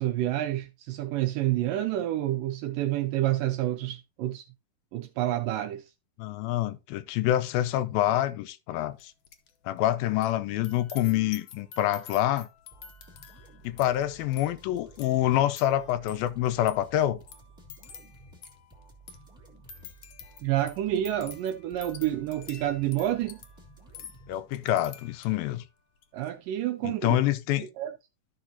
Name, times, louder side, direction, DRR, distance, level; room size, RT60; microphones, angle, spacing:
voice 1, 0.0-4.5 4.9-5.9 20.4-23.4 26.1-27.2 27.8-27.9, right 13 dB, 80° right, 2.2 m, -28 dB
voice 2, 6.2-9.1 9.7-12.5 13.6-17.2 24.3-25.6 26.8-27.7, left 13 dB, 85° left, 2.5 m, -26 dB
sound 1, 9.0-9.5 9.8-25.5 26.0-26.3, left 7 dB, 65° left, 1.6 m, -50 dB
sound 2, 12.7-24.9, right 1 dB, ahead, 1.7 m, -54 dB
13.5 x 5.9 x 2.8 m
omnidirectional pair, 4.1 m